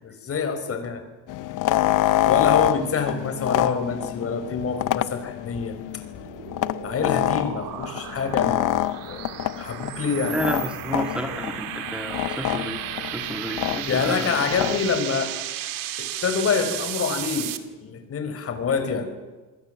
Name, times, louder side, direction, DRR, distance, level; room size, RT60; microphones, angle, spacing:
voice 1, 0.0-1.0 2.2-5.8 6.8-9.2 9.6-10.4 13.9-15.3 16.0-17.5 17.8-19.1, left 5 dB, 40° left, 8 dB, 5.0 m, -26 dB
sound 1, 1.3-15.0, left 14 dB, 60° left, 0.9 m, -26 dB
sound 2, 5.8-17.6, right 12 dB, 70° right, 2.3 m, -34 dB
voice 2, 10.3-12.8 13.1-14.7, equal, 5° right, 3 dB, 2.2 m, -31 dB
27.5 x 21.5 x 7.7 m, 1.2 s
cardioid pair, 130°, 35 cm